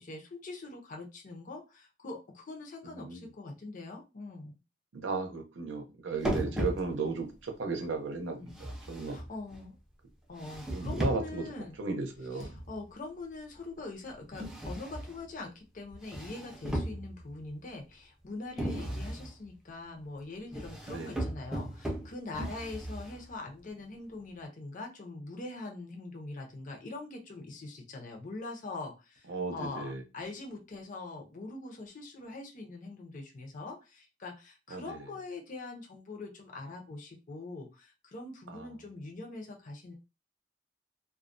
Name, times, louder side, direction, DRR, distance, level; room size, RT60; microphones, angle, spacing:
voice 1, 0.0-4.6 6.3-6.6 8.3-8.6 9.1-9.7 10.3-11.8 12.3-39.9, left 3 dB, 45° left, 2 dB, 0.6 m, -43 dB
voice 2, 2.8-3.3 4.9-9.2 10.7-11.4 11.8-12.5 18.8-18.9 20.9-21.2 29.3-30.0 34.7-35.0 38.5-38.7, right 3 dB, 90° right, 5 dB, 0.6 m, -35 dB
sound 1, 6.2-7.3 8.5-9.7 10.4-11.5 12.4-12.8 14.3-15.3 15.9-17.4 18.6-19.3 20.5-23.3, right 1 dB, 5° right, 0.5 m, -36 dB
2.3 x 2.1 x 2.5 m, 0.27 s
head